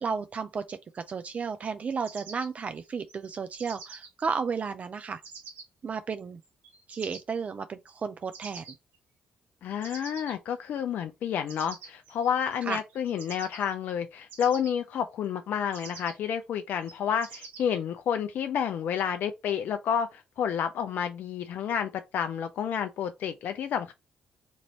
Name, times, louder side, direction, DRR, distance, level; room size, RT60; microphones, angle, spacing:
voice 1, 0.0-5.2 5.8-6.4 6.9-8.7 12.6-12.8, right 5 dB, 45° right, 0.3 m, -33 dB
sound 1, 2.0-4.1 5.2-5.6 6.4-7.2 8.3-9.0 9.8-10.4 11.5-13.9 14.3-14.7 15.7-16.3 16.8-17.8, right 5 dB, 75° right, 1.0 m, -46 dB
voice 2, 9.6-23.9, left 8 dB, 65° left, 0.4 m, -30 dB
3.0 x 2.6 x 4.0 m
hypercardioid pair, 50°, 3 cm